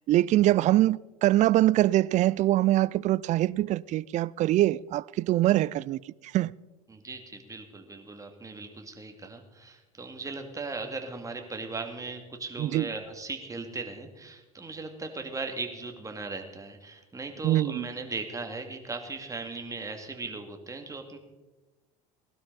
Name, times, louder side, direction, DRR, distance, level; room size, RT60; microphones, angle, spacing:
voice 1, 0.1-6.5 12.6-12.9 17.4-17.9, right 15 dB, 40° right, 0.4 m, -24 dB
voice 2, 6.9-21.2, right 3 dB, 15° right, 2.4 m, -38 dB
19.0 x 12.5 x 4.1 m
hypercardioid pair, 80°, 20 cm